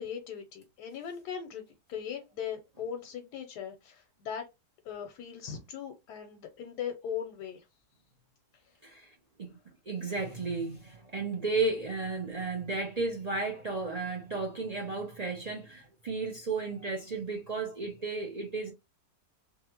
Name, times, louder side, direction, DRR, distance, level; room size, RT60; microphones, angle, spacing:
voice 1, 0.0-1.6 1.9-4.4 4.8-7.6, left 8 dB, 90° left, 1.2 m, -39 dB
voice 2, 8.8-9.6 9.9-18.7, right 3 dB, 60° right, 0.4 m, -34 dB
2.8 x 2.4 x 2.8 m
omnidirectional pair, 1.7 m